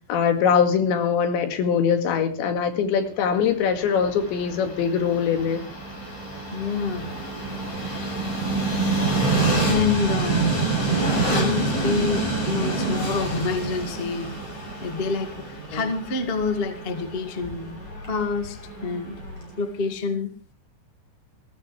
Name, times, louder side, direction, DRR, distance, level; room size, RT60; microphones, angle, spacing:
voice 1, 0.1-5.6 15.7-15.9, left 7 dB, 85° left, 7 dB, 4.3 m, -22 dB
Train, 3.5-19.6, right 3 dB, 35° left, 7.3 m, -27 dB
voice 2, 6.5-7.1 9.1-14.3 14.8-17.8 18.1-19.1 19.6-20.3, left 4 dB, 60° left, 7 dB, 0.5 m, -27 dB
21.0 x 16.0 x 3.3 m, 0.35 s
omnidirectional pair, 5.0 m